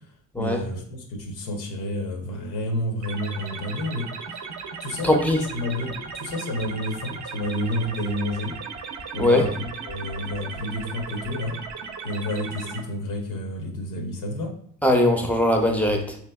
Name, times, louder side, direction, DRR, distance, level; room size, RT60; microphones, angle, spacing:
voice 1, 0.4-4.1 4.8-5.1 5.5-8.6 9.1-11.6 12.0-14.5, left 1 dB, 85° left, 2 dB, 0.9 m, -30 dB
sound 1, 3.0-12.8, right 5 dB, 45° right, 0.5 m, -36 dB
voice 2, 5.0-5.5 9.2-9.5 14.8-16.2, left 1 dB, 5° left, 2 dB, 0.4 m, -20 dB
3.3 x 2.9 x 2.2 m, 0.64 s
cardioid pair, 95°, 39 cm